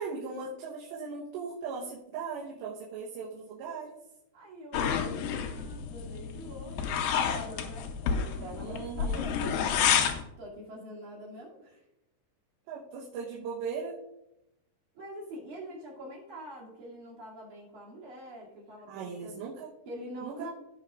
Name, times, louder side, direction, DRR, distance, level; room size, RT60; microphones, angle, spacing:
voice 1, 0.0-4.0 8.6-9.3 12.7-14.0 18.9-19.7 20.2-20.5, right 5 dB, 80° right, -4 dB, 3.3 m, -38 dB
voice 2, 4.3-9.6 10.4-11.8 14.9-19.4 19.9-20.5, equal, 50° right, -6 dB, 3.8 m, -45 dB
sound 1, 4.7-10.2, left 7 dB, 80° left, 2.0 m, -30 dB
16.5 x 6.8 x 2.5 m, 0.85 s
omnidirectional pair, 5.1 m